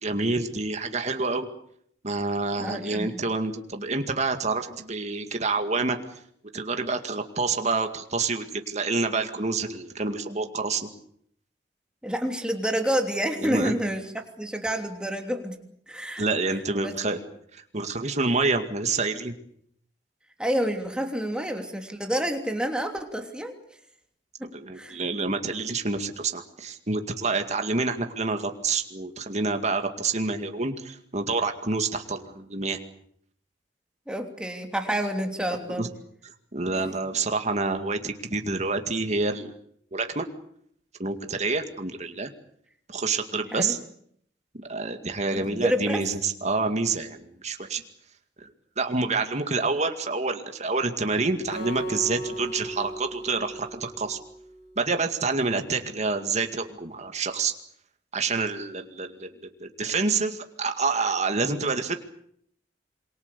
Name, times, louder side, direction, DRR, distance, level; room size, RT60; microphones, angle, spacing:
voice 1, 0.0-1.5 2.0-6.2 6.5-10.9 13.4-13.8 16.2-17.2 17.5-19.3 24.4-32.8 35.7-35.9 36.2-39.5 39.9-40.3 41.0-42.3 42.9-43.8 44.5-47.8 48.4-48.5 48.8-54.2 54.8-57.5 58.1-61.9, right 3 dB, 40° right, 6 dB, 2.2 m, -28 dB
voice 2, 2.6-3.1 12.0-14.0 14.4-15.6 15.9-16.2 16.8-17.1 20.4-23.5 24.4-25.0 34.1-35.9 43.5-43.7 45.3-46.0, equal, 5° right, 4 dB, 3.0 m, -28 dB
Acoustic guitar, 51.5-54.8, right 1 dB, 65° left, 6.4 m, -36 dB
27.0 x 23.5 x 6.9 m, 0.69 s
head